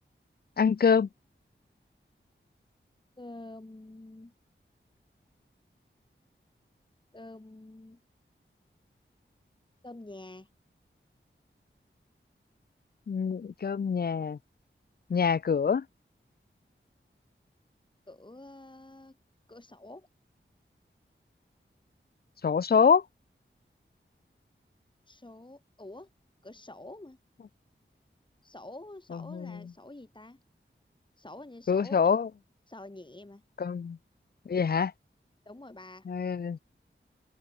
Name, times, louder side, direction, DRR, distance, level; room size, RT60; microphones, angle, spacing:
voice 1, 0.6-1.1 13.1-14.4 15.1-15.8 22.4-23.0 29.1-29.6 31.7-32.3 33.6-34.0 34.5-34.9 36.1-36.6, left 6 dB, 50° left, 0.5 m, -25 dB
voice 2, 3.2-4.3 7.1-8.0 9.8-10.5 18.1-19.2 19.5-20.1 25.1-26.1 26.4-27.2 28.4-30.4 31.2-32.1 32.7-33.4 35.5-36.1, left 2 dB, 25° left, 1.8 m, -47 dB
open air
wide cardioid pair, 70°, 21 cm